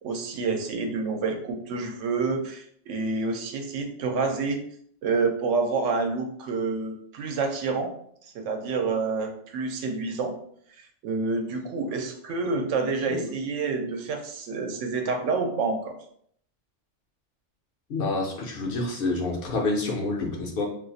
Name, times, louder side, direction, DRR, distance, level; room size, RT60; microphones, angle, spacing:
voice 1, 0.0-4.6 5.0-7.9 8.2-10.3 11.0-15.9, right 4 dB, 80° right, 4 dB, 0.9 m, -28 dB
voice 2, 17.9-20.7, left 2 dB, 60° left, 1 dB, 0.7 m, -28 dB
2.5 x 2.4 x 3.9 m, 0.65 s
omnidirectional pair, 1.2 m